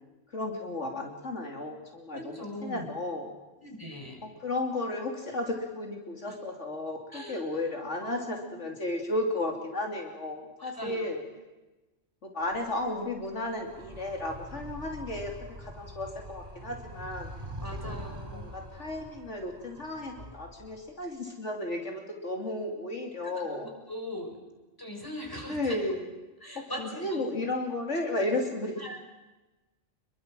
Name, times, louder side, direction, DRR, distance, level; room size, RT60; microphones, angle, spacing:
voice 1, 0.3-3.3 4.2-11.2 12.2-15.3 15.6-17.3 17.8-18.0 18.3-23.7 25.5-26.1 26.5-28.8, left 2 dB, 75° left, 2 dB, 3.3 m, -34 dB
voice 2, 2.1-2.9 3.6-4.2 6.3-6.4 7.1-7.6 8.0-8.4 10.6-11.1 17.6-18.5 23.2-24.4 24.8-25.8 26.4-27.2 28.8-29.0, equal, 15° left, 1 dB, 6.0 m, -41 dB
Animal, 12.4-21.0, equal, 40° right, 6.3 m, -44 dB
26.0 x 22.5 x 7.6 m, 1.1 s
omnidirectional pair, 1.2 m